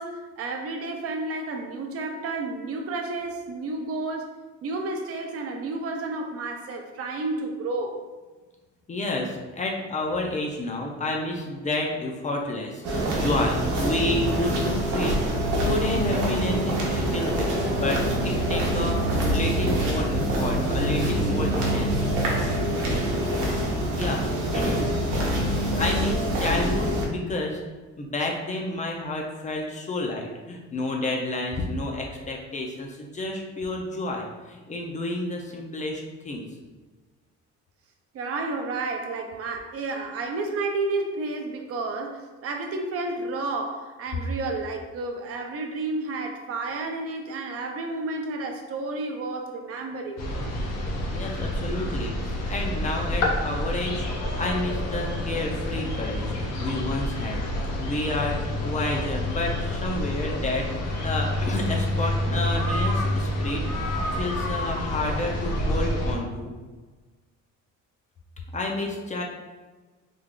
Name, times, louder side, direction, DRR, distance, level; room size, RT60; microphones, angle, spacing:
voice 1, 0.0-8.1 38.1-50.2, right 3 dB, 50° right, 4 dB, 0.5 m, -31 dB
voice 2, 8.9-22.2 24.0-24.3 24.5-24.9 25.8-27.6 28.0-36.4 51.1-54.1 54.3-57.5 57.8-66.5 68.5-69.2, left 2 dB, 25° left, 0 dB, 0.4 m, -30 dB
sound 1, 12.8-27.1, right 1 dB, 80° right, 0.8 m, -25 dB
sound 2, 50.2-66.1, left 1 dB, 60° left, 0.7 m, -28 dB
3.3 x 2.2 x 3.6 m, 1.3 s
cardioid pair, 155°, 30 cm